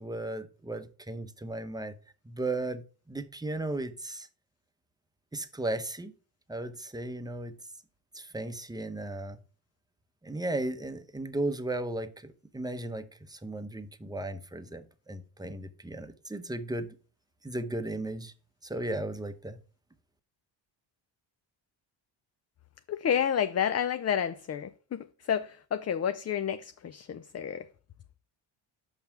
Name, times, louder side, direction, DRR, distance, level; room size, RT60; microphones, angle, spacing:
voice 1, 0.0-1.9 2.2-2.8 3.1-4.3 5.3-6.1 6.5-7.5 8.1-9.4 10.2-16.9 17.4-18.3 18.6-19.6, right 2 dB, 10° right, 0.8 m, -35 dB
voice 2, 22.9-27.7, left 8 dB, 35° left, 0.5 m, -30 dB
5.7 x 5.5 x 5.9 m
cardioid pair, 80°, 49 cm